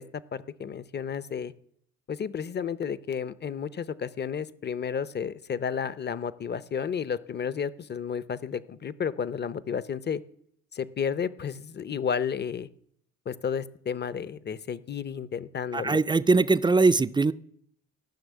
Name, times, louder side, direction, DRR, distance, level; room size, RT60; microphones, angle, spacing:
voice 1, 0.0-1.5 2.1-10.2 10.7-12.7 13.3-16.0, left 7 dB, 35° left, 18 dB, 0.7 m, -32 dB
voice 2, 15.7-17.3, right 3 dB, 15° right, 14 dB, 0.4 m, -21 dB
14.5 x 6.1 x 8.2 m, 0.68 s
cardioid pair, 90°, 30 cm